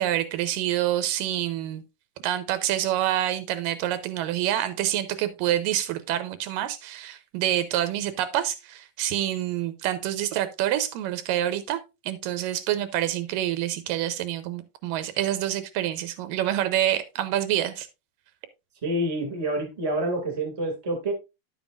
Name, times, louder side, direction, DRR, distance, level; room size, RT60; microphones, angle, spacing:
voice 1, 0.0-1.8 2.2-17.9, right 12 dB, 80° right, 2.3 m, -27 dB
voice 2, 18.8-21.1, right 1 dB, 15° right, 1.6 m, -27 dB
10.5 x 7.2 x 2.4 m
omnidirectional pair, 4.0 m